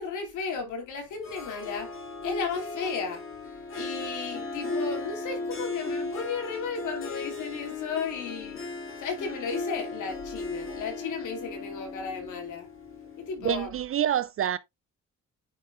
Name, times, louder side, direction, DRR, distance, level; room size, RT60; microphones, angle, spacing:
voice 1, 0.0-1.9 2.2-3.2 3.7-8.7 9.0-12.7 13.2-13.7, left 5 dB, 80° left, 2.9 m, -34 dB
Harp, 1.2-13.4, left 3 dB, 45° left, 3.1 m, -36 dB
voice 2, 13.4-14.6, right 10 dB, 45° right, 0.4 m, -27 dB
9.6 x 5.5 x 2.5 m
cardioid pair, 90°, 30 cm